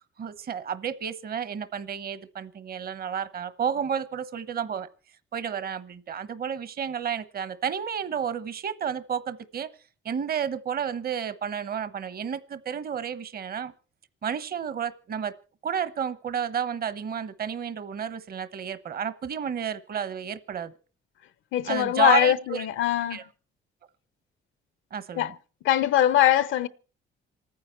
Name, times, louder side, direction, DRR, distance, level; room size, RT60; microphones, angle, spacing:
voice 1, 0.2-4.9 5.3-9.7 10.0-13.7 14.2-15.3 15.6-20.7 21.7-22.7 23.1-23.2 24.9-25.3, right 8 dB, 50° right, 1.0 m, -31 dB
voice 2, 21.5-23.2 25.2-25.3 25.6-26.7, left 11 dB, 80° left, 0.9 m, -22 dB
27.5 x 9.7 x 4.5 m
cardioid pair, 90°, 20 cm